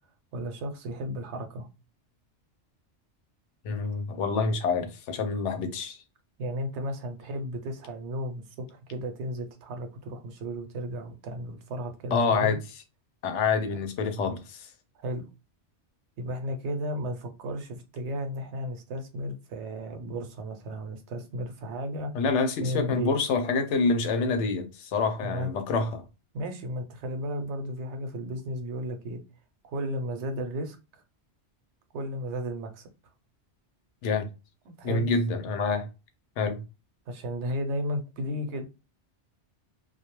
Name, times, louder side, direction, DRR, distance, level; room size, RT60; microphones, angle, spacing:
voice 1, 0.3-1.7 6.4-12.6 13.7-13.8 15.0-15.3 16.2-22.1 22.6-23.1 25.2-25.5 26.3-29.2 29.6-30.8 31.9-32.9 34.7-35.1 37.1-38.7, equal, 75° right, 0.9 m, -34 dB
voice 2, 3.6-6.0 12.1-12.6 13.2-14.6 22.1-26.0 34.0-34.3 34.8-35.9 36.4-36.6, left 4 dB, 80° left, 0.9 m, -27 dB
2.3 x 2.1 x 2.9 m
omnidirectional pair, 1.2 m